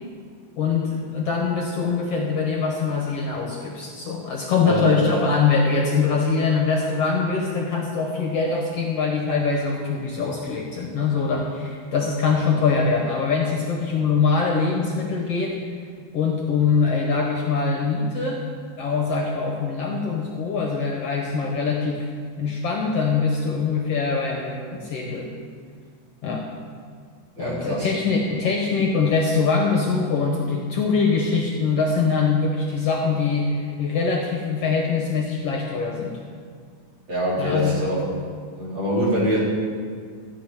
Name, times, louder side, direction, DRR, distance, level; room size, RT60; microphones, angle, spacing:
voice 1, 0.6-15.6 16.1-18.4 18.8-22.1 22.4-25.3 26.2-26.5 27.4-36.2 37.4-37.8, left 4 dB, 60° left, 0 dB, 1.9 m, -23 dB
voice 2, 27.4-27.9 37.1-38.0 38.5-39.4, equal, 35° right, -5 dB, 4.3 m, -24 dB
14.5 x 5.9 x 9.1 m, 2.1 s
omnidirectional pair, 3.6 m